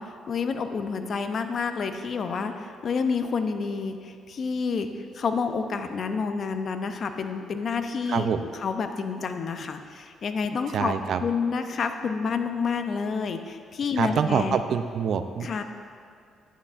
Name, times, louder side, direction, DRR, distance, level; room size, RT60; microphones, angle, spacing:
voice 1, 0.0-4.9 5.1-8.3 8.5-10.9 11.2-14.6 15.4-15.6, left 5 dB, 55° left, 7 dB, 0.6 m, -29 dB
voice 2, 8.1-8.4 10.7-11.2 14.0-15.5, right 7 dB, 65° right, 10 dB, 0.4 m, -25 dB
11.0 x 9.7 x 2.5 m, 2.2 s
cardioid pair, 90°, 0 cm